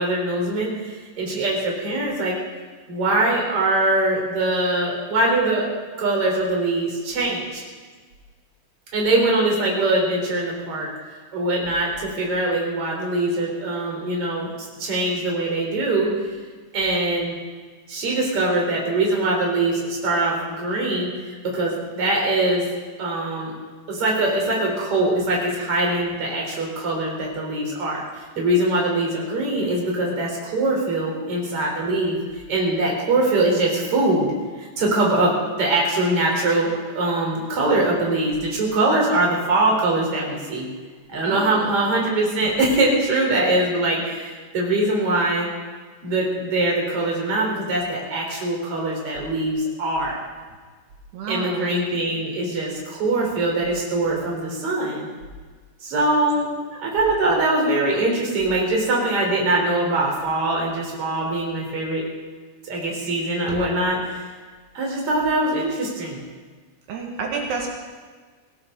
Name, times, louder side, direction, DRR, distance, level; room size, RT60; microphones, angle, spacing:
voice 1, 0.0-2.4 2.9-5.7 6.0-7.6 8.9-10.9 11.3-14.5 14.8-16.1 16.7-17.4 17.9-21.1 21.4-22.6 23.0-23.5 23.9-32.2 32.5-34.3 34.6-40.7 41.1-45.5 46.0-50.2 51.3-55.1 55.8-56.5 56.8-62.1 62.6-64.3 64.7-66.2, right 2 dB, 35° right, -2 dB, 4.3 m, -22 dB
voice 2, 41.3-41.7 51.1-51.7 66.9-67.7, right 5 dB, 70° right, 0 dB, 3.6 m, -30 dB
21.0 x 17.0 x 3.8 m, 1.5 s
omnidirectional pair, 5.0 m